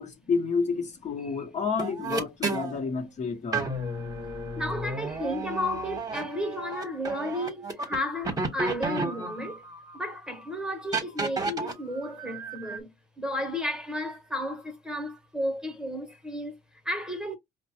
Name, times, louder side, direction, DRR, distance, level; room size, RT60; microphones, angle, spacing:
voice 1, 0.0-3.7, left 5 dB, 45° left, 1.0 m, -30 dB
sound 1, 1.8-2.8 3.5-8.0 8.2-10.0 10.9-11.7 12.2-12.8, right 3 dB, 20° right, 1.1 m, -32 dB
voice 2, 4.6-9.6 9.9-17.4, left 1 dB, 5° right, 1.1 m, -33 dB
5.0 x 2.2 x 2.8 m
cardioid pair, 110°, 17 cm